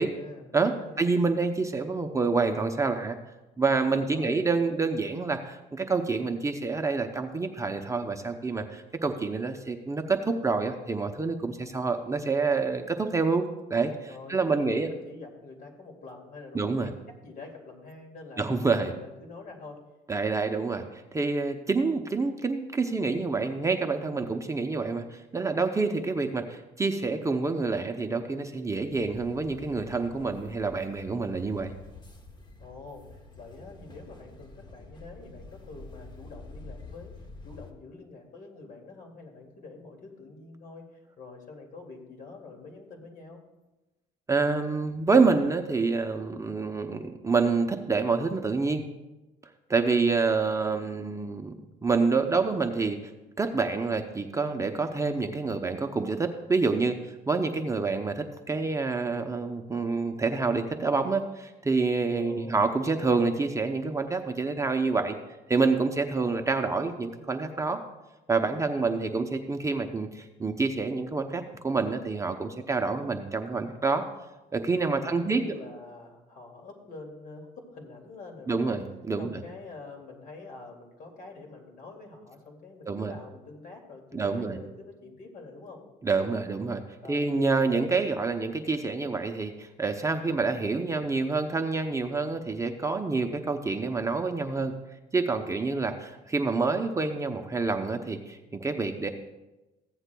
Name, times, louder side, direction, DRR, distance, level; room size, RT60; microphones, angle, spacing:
voice 1, 0.0-1.2 3.9-4.4 14.1-19.8 32.6-43.4 62.2-62.6 68.5-69.0 74.9-78.8 79.2-85.8 87.0-87.3, left 3 dB, 55° left, 2 dB, 2.3 m, -46 dB
voice 2, 0.5-3.2 3.6-13.4 13.7-14.9 16.5-16.9 18.4-18.9 20.1-31.7 44.3-48.8 49.7-51.5 51.8-53.1 53.4-65.2 65.5-67.8 68.3-74.0 74.5-75.4 78.5-79.4 82.8-83.1 84.1-84.6 86.0-86.8 87.1-94.7 95.1-99.1, right 4 dB, 20° right, 5 dB, 0.6 m, -27 dB
sound 1, 28.9-37.7, left 2 dB, 25° left, 1.1 m, -48 dB
15.0 x 9.7 x 2.2 m, 1.0 s
cardioid pair, 110°, 17 cm